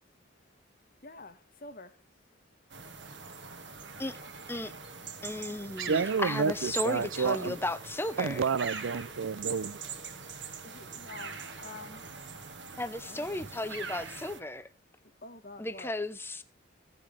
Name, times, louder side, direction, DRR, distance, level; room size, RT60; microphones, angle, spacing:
voice 1, 1.6-2.0 10.6-12.0 13.0-13.3 15.2-15.9, left 2 dB, 45° left, 1.3 m, -47 dB
sound 1, 2.7-14.4, right 5 dB, 55° right, 1.7 m, -42 dB
voice 2, 5.2-8.4 12.8-14.7 15.6-16.4, left 2 dB, 10° left, 0.7 m, -35 dB
voice 3, 5.9-7.5 8.2-9.7, right 5 dB, 75° right, 0.5 m, -29 dB
16.0 x 7.3 x 5.2 m
head